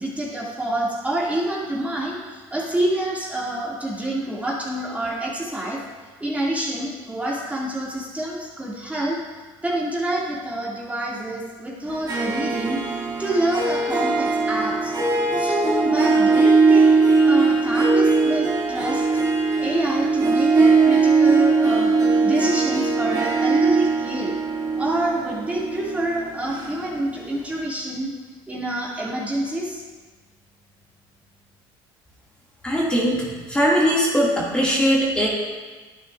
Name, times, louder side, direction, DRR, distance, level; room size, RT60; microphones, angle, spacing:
voice 1, 0.0-5.8 6.2-9.2 9.6-12.8 13.2-14.9 15.4-19.0 19.6-21.9 22.2-24.3 24.8-28.1 28.5-29.8, right 1 dB, 10° right, -6 dB, 2.5 m, -27 dB
Harp, 11.9-27.2, right 4 dB, 35° right, 2.5 m, -20 dB
voice 2, 32.6-35.3, equal, 10° left, -6 dB, 2.4 m, -20 dB
11.0 x 9.5 x 2.6 m, 1.4 s
supercardioid pair, 85°, 12 cm